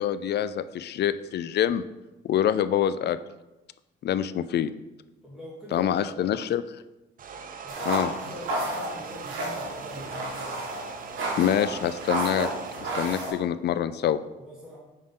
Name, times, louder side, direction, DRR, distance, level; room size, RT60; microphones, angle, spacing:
voice 1, 0.0-1.9 2.2-3.2 4.0-4.7 5.7-6.6 7.9-8.1 11.4-12.5 12.8-14.2, left 10 dB, 60° left, 14 dB, 0.4 m, -25 dB
voice 2, 5.2-6.3 7.6-10.6 14.4-14.8, left 1 dB, 5° right, -9 dB, 2.1 m, -43 dB
sound 1, 7.2-13.0, right 5 dB, 45° right, 0.6 m, -41 dB
sound 2, 7.7-13.3, right 1 dB, 80° right, 1.6 m, -32 dB
4.9 x 4.0 x 5.6 m, 1.0 s
cardioid pair, 90°, 20 cm